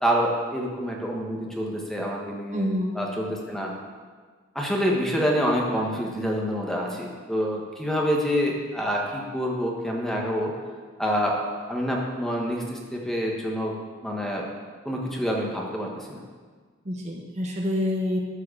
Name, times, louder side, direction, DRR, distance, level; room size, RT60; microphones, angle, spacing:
voice 1, 0.0-2.7 2.9-3.7 4.5-10.5 11.0-11.4 11.7-13.8 14.0-14.5 14.8-16.2, equal, ahead, -2 dB, 1.2 m, -27 dB
voice 2, 2.5-3.0 16.8-18.2, left 1 dB, 35° right, 0 dB, 1.0 m, -27 dB
12.0 x 4.7 x 6.4 m, 1.5 s
head